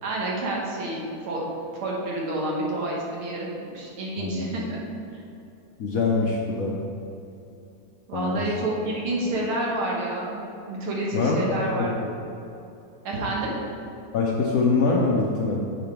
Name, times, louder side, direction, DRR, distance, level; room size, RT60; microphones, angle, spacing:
voice 1, 0.0-1.4 1.7-4.8 5.1-5.2 8.1-11.9 13.0-13.5, right 1 dB, 80° right, -3 dB, 2.2 m, -29 dB
voice 2, 4.2-4.5 5.8-6.8 8.1-8.5 11.1-11.9 14.1-15.6, left 3 dB, 70° left, -2 dB, 0.8 m, -24 dB
7.6 x 5.2 x 4.5 m, 2.8 s
omnidirectional pair, 2.3 m